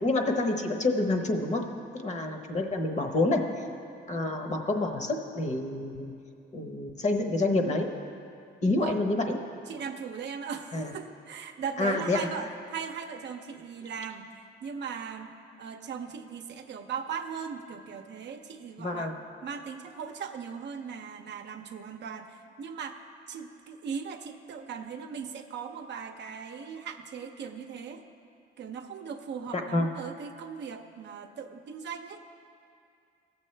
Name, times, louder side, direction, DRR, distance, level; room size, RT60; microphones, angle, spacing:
voice 1, 0.0-1.6 2.0-3.4 4.1-6.1 6.5-7.9 8.6-9.4 10.7-10.9 11.8-12.2 18.8-19.1 29.5-29.9, left 2 dB, 35° left, 4 dB, 1.0 m, -28 dB
voice 2, 9.7-19.1 19.4-28.0 28.6-32.2, right 6 dB, 60° right, 6 dB, 0.6 m, -39 dB
16.5 x 7.0 x 3.3 m, 2.5 s
cardioid pair, 90°, 20 cm